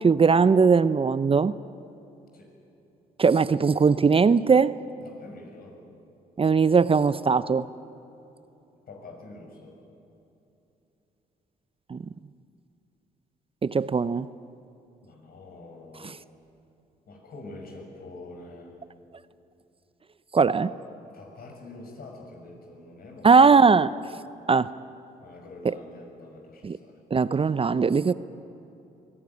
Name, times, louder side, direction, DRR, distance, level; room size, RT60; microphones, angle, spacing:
voice 1, 0.0-1.5 3.2-4.7 6.4-7.7 11.9-12.0 13.6-14.3 20.3-20.7 23.2-23.9 24.5-24.7 26.6-26.8 27.1-28.1, right 5 dB, 30° right, 15 dB, 0.7 m, -19 dB
voice 2, 5.0-5.8 8.9-9.8 15.0-16.2 17.1-18.8 20.6-20.8 21.1-23.8 25.2-27.0, left 2 dB, 60° left, 2 dB, 6.5 m, -45 dB
23.5 x 17.5 x 9.7 m, 2.9 s
hypercardioid pair, 55°, 18 cm